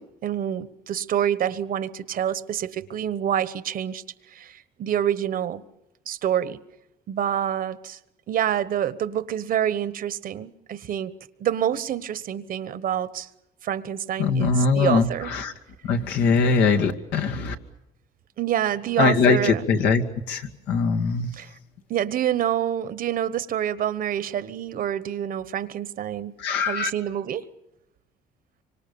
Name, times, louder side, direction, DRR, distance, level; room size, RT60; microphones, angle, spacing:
voice 1, 0.0-5.6 6.1-6.6 7.1-8.0 8.3-11.1 11.4-13.3 13.6-15.3 18.4-19.6 21.3-21.5 21.9-26.4 26.7-27.5, right 10 dB, 55° right, 1.2 m, -27 dB
voice 2, 14.2-15.5 15.8-17.6 19.0-21.3 26.4-26.9, left 5 dB, 85° left, 2.2 m, -22 dB
26.0 x 25.0 x 7.0 m
cardioid pair, 110°, 17 cm